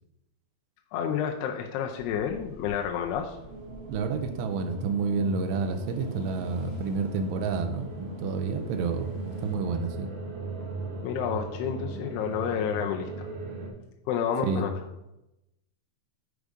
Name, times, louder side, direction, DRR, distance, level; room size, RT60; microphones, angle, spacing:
voice 1, 0.9-3.4 11.0-13.3 14.1-14.7, left 8 dB, 80° left, 2 dB, 2.6 m, -30 dB
sound 1, 1.9-9.6, equal, 60° left, 0.4 m, -53 dB
sound 2, 3.4-13.7, right 3 dB, 65° right, 1.5 m, -38 dB
voice 2, 3.9-10.1 14.4-14.7, right 4 dB, 80° right, 6 dB, 2.8 m, -29 dB
8.2 x 4.8 x 5.1 m, 0.90 s
omnidirectional pair, 4.9 m